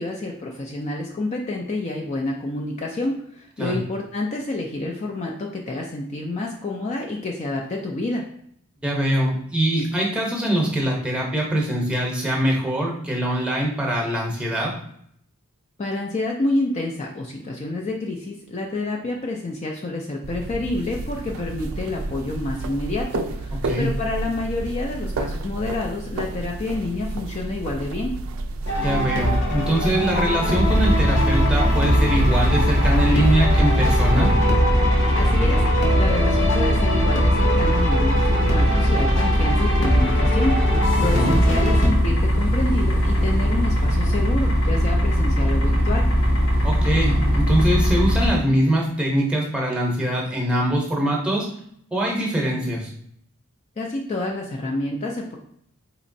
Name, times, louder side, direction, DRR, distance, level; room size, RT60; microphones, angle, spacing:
voice 1, 0.0-8.2 15.8-28.2 35.1-35.6 36.0-46.1 53.8-55.4, left 2 dB, 30° left, 0 dB, 0.4 m, -28 dB
voice 2, 8.8-14.7 23.6-23.9 28.8-34.3 41.1-41.4 46.6-51.5 51.9-52.9, right 1 dB, 5° right, -2 dB, 0.8 m, -23 dB
sound 1, 20.2-34.3, right 2 dB, 65° right, 0.4 m, -31 dB
sound 2, 28.7-41.9, equal, 55° left, 0.8 m, -23 dB
sound 3, 30.6-48.3, equal, 80° left, 1.1 m, -20 dB
4.2 x 2.9 x 2.6 m, 0.67 s
head